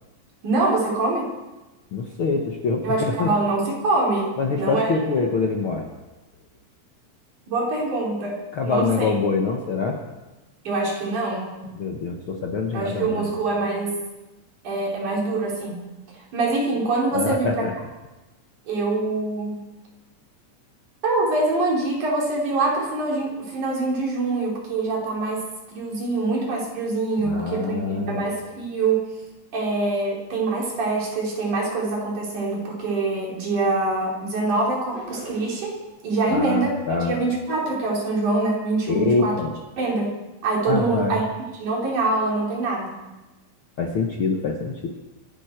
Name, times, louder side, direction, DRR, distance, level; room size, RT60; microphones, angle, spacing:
voice 1, 0.4-1.3 2.8-4.9 7.5-9.1 10.6-11.5 12.7-14.0 14.6-15.9 16.3-17.6 18.7-19.7 21.0-25.4 25.7-29.1 29.5-35.8 36.0-39.4 39.8-40.1 40.4-41.2 41.6-42.9, right 3 dB, 65° right, -3 dB, 5.1 m, -24 dB
voice 2, 1.9-3.3 4.4-5.9 8.5-10.0 11.7-13.2 17.1-17.7 27.2-28.2 36.3-37.2 38.9-39.5 40.7-41.2 43.8-44.9, left 4 dB, 55° left, 1 dB, 1.6 m, -25 dB
sound 1, 34.9-35.8, right 2 dB, 30° right, 4.7 m, -40 dB
25.0 x 11.5 x 4.5 m, 1.1 s
omnidirectional pair, 3.8 m